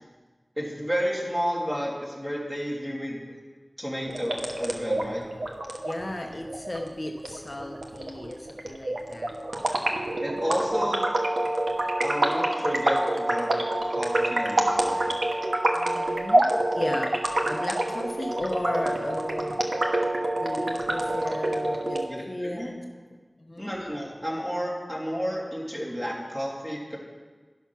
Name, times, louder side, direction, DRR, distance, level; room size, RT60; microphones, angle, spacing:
voice 1, 0.6-3.2 3.8-5.2 10.2-11.0 12.0-15.2 22.1-22.7 23.6-27.0, equal, 15° right, -4 dB, 2.6 m, -31 dB
sound 1, 4.1-22.1, right 1 dB, 85° right, 1.0 m, -27 dB
voice 2, 5.8-9.4 15.7-16.5 16.7-17.2 17.4-19.5 20.4-22.8 23.1-23.7, left 1 dB, 45° left, 2 dB, 0.8 m, -35 dB
11.5 x 5.8 x 6.0 m, 1.4 s
wide cardioid pair, 55°, 0 cm